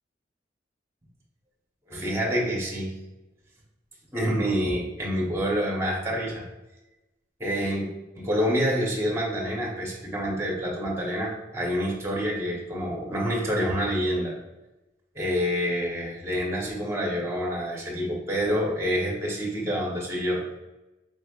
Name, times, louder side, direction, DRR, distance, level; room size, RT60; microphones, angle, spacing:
voice 1, 1.9-2.9 4.1-6.4 7.4-7.9 8.1-14.3 15.1-20.4, equal, 15° right, -3 dB, 1.1 m, -27 dB
4.5 x 3.3 x 2.4 m, 1.0 s
head